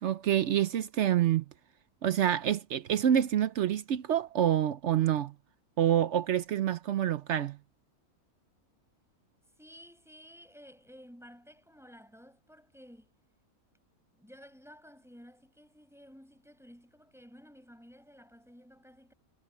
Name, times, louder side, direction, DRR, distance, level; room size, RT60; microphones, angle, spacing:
voice 1, 0.0-1.4 2.0-5.3 5.8-7.6, right 10 dB, 65° right, 0.8 m, -27 dB
voice 2, 9.6-13.1 14.1-19.1, equal, ahead, 6.8 m, -54 dB
omnidirectional pair, 1.5 m